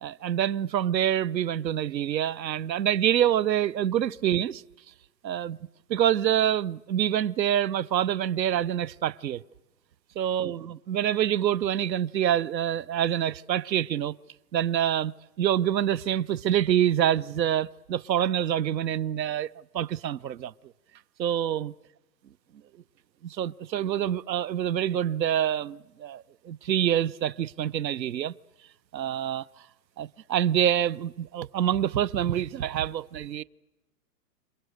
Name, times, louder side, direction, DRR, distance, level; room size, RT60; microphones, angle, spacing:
voice 1, 0.0-4.6 5.2-5.6 5.9-9.4 10.2-14.1 14.5-15.1 15.4-19.5 19.7-20.5 21.2-21.7 23.2-28.3 28.9-29.4 30.0-33.4, right 10 dB, 90° right, 0.9 m, -26 dB
29.0 x 27.0 x 6.5 m
hypercardioid pair, 150°, 49 cm